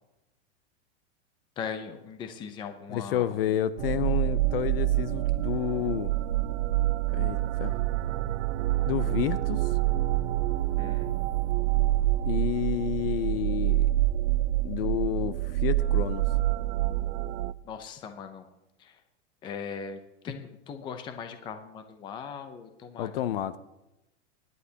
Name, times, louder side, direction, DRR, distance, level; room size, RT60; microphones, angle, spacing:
voice 1, 1.6-3.6 10.8-11.2 17.6-18.5 18.8-19.0 19.4-23.1, left 6 dB, 15° left, 8 dB, 0.6 m, -39 dB
voice 2, 2.9-6.1 7.1-7.8 8.9-9.6 12.3-13.9 14.6-16.3 23.0-23.6, left 11 dB, 55° left, 15 dB, 0.7 m, -30 dB
sound 1, 3.8-17.5, right 15 dB, 75° right, 0.5 m, -27 dB
23.5 x 11.0 x 2.8 m, 0.93 s
supercardioid pair, 160°, 34 cm